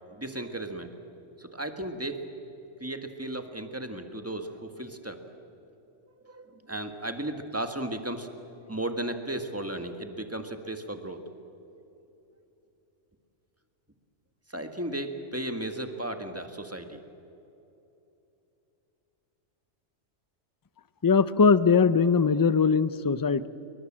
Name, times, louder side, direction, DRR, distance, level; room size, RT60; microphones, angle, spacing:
voice 1, 0.1-1.0 1.4-2.2 2.8-5.2 6.2-8.3 8.7-11.2 14.5-17.0, right 1 dB, 10° right, 6 dB, 1.7 m, -35 dB
voice 2, 21.0-23.5, left 5 dB, 35° left, 15 dB, 0.3 m, -21 dB
29.0 x 23.5 x 7.5 m, 2.9 s
omnidirectional pair, 1.3 m